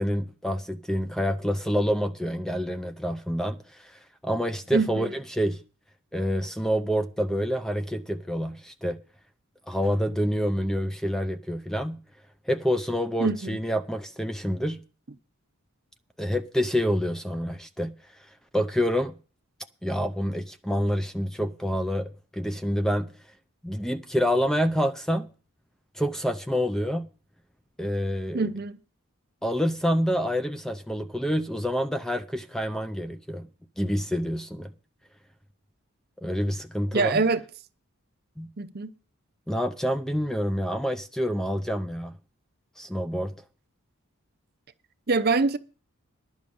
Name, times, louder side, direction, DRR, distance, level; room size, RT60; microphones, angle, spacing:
voice 1, 0.0-5.6 6.1-9.0 9.7-12.0 12.5-14.8 16.2-17.9 18.5-19.1 19.8-23.1 23.6-25.3 25.9-27.1 27.8-28.5 29.4-33.5 33.8-34.7 36.2-37.2 38.4-38.5 39.5-42.1 42.8-43.3, equal, ahead, 0.5 m, -27 dB
voice 2, 4.7-5.1 13.2-13.6 28.3-28.8 36.9-37.4 38.6-38.9 45.1-45.6, right 3 dB, 45° right, 0.6 m, -24 dB
11.0 x 6.3 x 8.6 m
head